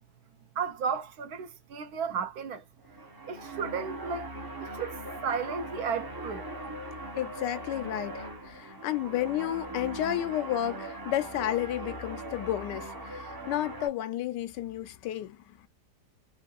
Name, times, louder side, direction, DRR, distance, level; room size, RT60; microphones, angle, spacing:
voice 1, 0.6-2.6 3.3-4.3 4.6-6.5, right 6 dB, 70° right, 1.1 m, -34 dB
sound 1, 2.8-13.9, right 1 dB, 25° right, 0.4 m, -40 dB
voice 2, 7.2-15.6, left 12 dB, 90° left, 1.2 m, -32 dB
3.7 x 2.5 x 2.3 m
omnidirectional pair, 1.8 m